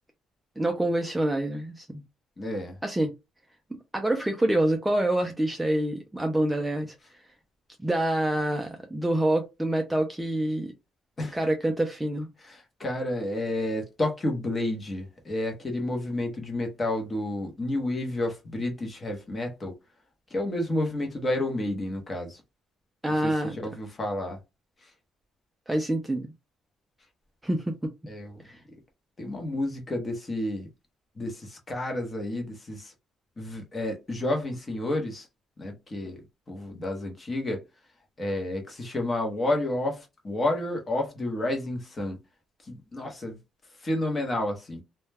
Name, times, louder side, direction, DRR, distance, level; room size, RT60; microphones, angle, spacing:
voice 1, 0.6-2.0 2.8-3.1 3.9-6.9 7.8-10.7 11.3-12.3 23.0-23.6 25.7-26.3 27.4-27.9 28.4-28.6, right 1 dB, 5° right, 0.3 m, -26 dB
voice 2, 2.4-2.8 11.2-11.4 12.4-19.7 20.3-22.4 23.2-24.4 24.8-24.9 28.1-28.4 29.2-30.7 31.2-32.9 33.4-35.3 35.6-37.6 38.2-42.2 42.6-43.4 43.8-44.8, left 1 dB, 20° left, 0.7 m, -30 dB
2.1 x 2.1 x 3.2 m
cardioid pair, 150°, 0 cm